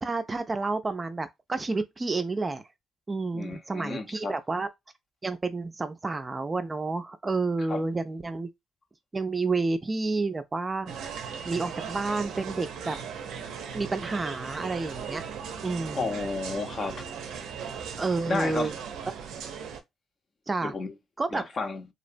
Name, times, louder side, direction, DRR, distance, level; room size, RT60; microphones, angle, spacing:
voice 1, 0.0-2.6 3.1-4.7 5.2-8.5 9.1-10.9 11.5-13.0 13.7-15.2 15.6-16.1 18.0-18.7 20.5-20.7 21.2-21.5, right 3 dB, 25° right, 0.4 m, -30 dB
voice 2, 3.3-4.4 7.7-7.8 15.9-17.1 18.3-18.7 20.6-20.9 21.3-21.8, left 3 dB, 45° left, 0.6 m, -32 dB
sound 1, 10.9-19.8, right 7 dB, 80° right, 0.5 m, -38 dB
2.8 x 2.0 x 2.5 m
cardioid pair, 90°, 0 cm